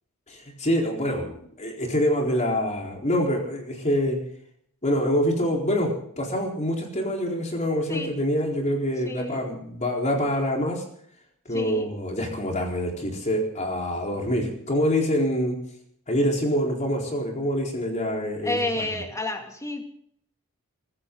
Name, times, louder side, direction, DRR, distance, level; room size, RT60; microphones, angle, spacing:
voice 1, 0.3-4.2 4.8-5.9 6.2-10.8 11.5-15.6 16.1-18.9, equal, 35° left, 1 dB, 4.2 m, -25 dB
voice 2, 9.0-9.5 11.5-11.9 18.4-19.8, left 2 dB, 15° left, 4 dB, 2.4 m, -30 dB
24.0 x 14.5 x 3.9 m, 0.66 s
head